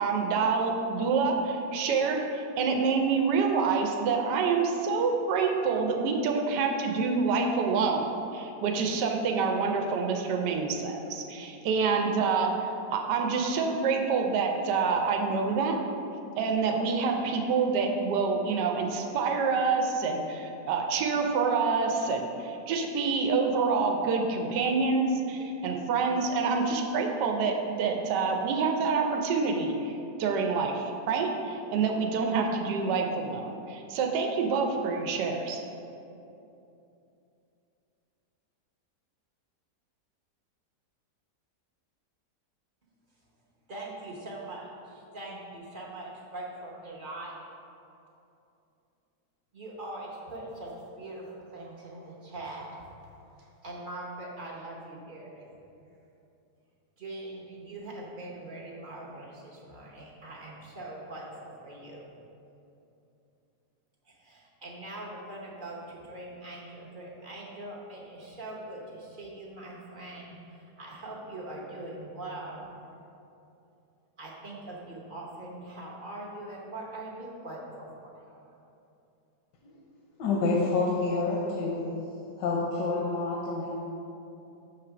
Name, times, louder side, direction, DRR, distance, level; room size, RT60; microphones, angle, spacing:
voice 1, 0.0-15.8 16.4-29.9 30.2-35.6, right 4 dB, 80° right, 3 dB, 1.2 m, -27 dB
voice 2, 43.7-47.4 49.5-52.9 53.4-55.5 57.0-62.1 64.1-72.7 74.2-78.6, right 2 dB, 40° right, -3 dB, 0.8 m, -42 dB
voice 3, 80.2-81.8 82.4-83.8, left 3 dB, 85° left, -2 dB, 1.3 m, -28 dB
7.0 x 3.3 x 5.8 m, 2.8 s
omnidirectional pair, 1.8 m